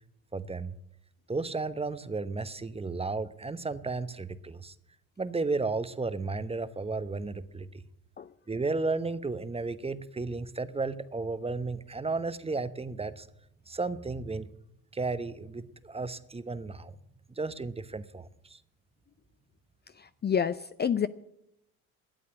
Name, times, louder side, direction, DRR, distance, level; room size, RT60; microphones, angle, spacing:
voice 1, 0.3-0.7 1.3-4.7 5.2-7.7 8.5-13.3 13.7-14.5 14.9-16.9 17.4-18.6, right 3 dB, 15° right, 14 dB, 0.9 m, -33 dB
voice 2, 20.0-21.1, left 7 dB, 30° left, 13 dB, 0.5 m, -28 dB
13.0 x 8.6 x 9.6 m, 0.82 s
hypercardioid pair, 75°, 37 cm